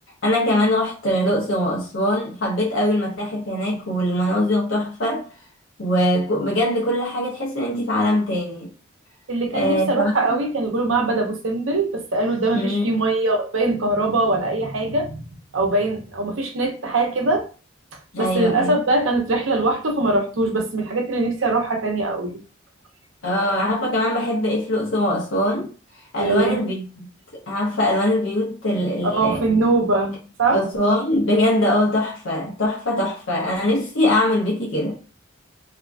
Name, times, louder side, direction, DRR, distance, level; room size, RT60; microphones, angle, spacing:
voice 1, 0.2-5.2 5.8-8.7 9.5-10.4 12.5-12.9 18.1-18.7 23.2-25.7 26.1-27.1 27.5-29.4 30.5-34.9, left 1 dB, 75° left, 0.8 m, -22 dB
voice 2, 9.3-15.2 15.5-17.5 18.2-22.4 26.2-26.6 29.0-30.6, right 2 dB, 85° right, 0.8 m, -22 dB
2.8 x 2.5 x 3.4 m
head